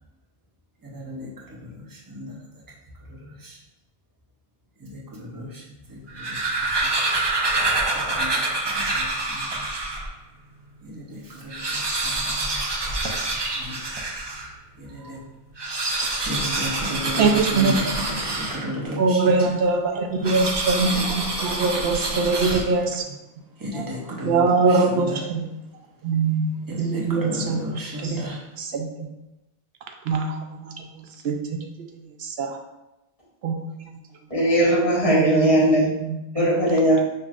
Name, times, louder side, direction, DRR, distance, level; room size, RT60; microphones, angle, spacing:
voice 1, 0.8-2.6 3.0-3.6 4.8-7.0 7.9-9.7 10.8-13.9 14.8-15.2 16.2-19.5 20.2-20.3 20.8-22.6 23.6-25.2 26.7-28.5, equal, 25° right, -3 dB, 0.7 m, -35 dB
sound 1, 6.0-10.1 10.7-10.8 11.0-11.1 11.4-14.5 15.5-18.9 20.2-22.9, right 2 dB, 40° right, 0.3 m, -26 dB
voice 2, 17.2-18.0 18.9-23.0 24.2-25.5 26.0-28.3 28.6-29.1 30.1-31.4 32.2-32.6 33.4-33.9 34.7-36.5, right 4 dB, 70° right, 4 dB, 0.8 m, -23 dB
voice 3, 34.3-35.9 36.3-37.0, right 1 dB, 35° left, -6 dB, 1.3 m, -18 dB
5.7 x 2.6 x 2.4 m, 0.95 s
omnidirectional pair, 1.1 m